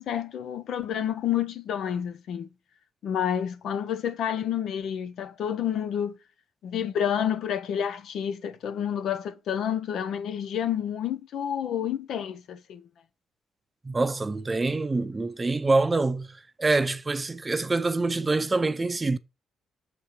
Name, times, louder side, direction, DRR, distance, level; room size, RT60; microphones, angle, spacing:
voice 1, 0.0-2.5 3.0-6.2 6.6-12.8, left 9 dB, 70° left, 0.7 m, -29 dB
voice 2, 13.8-16.3 16.6-19.2, right 3 dB, 25° right, 0.6 m, -25 dB
6.8 x 4.3 x 4.9 m
cardioid pair, 90°, 0 cm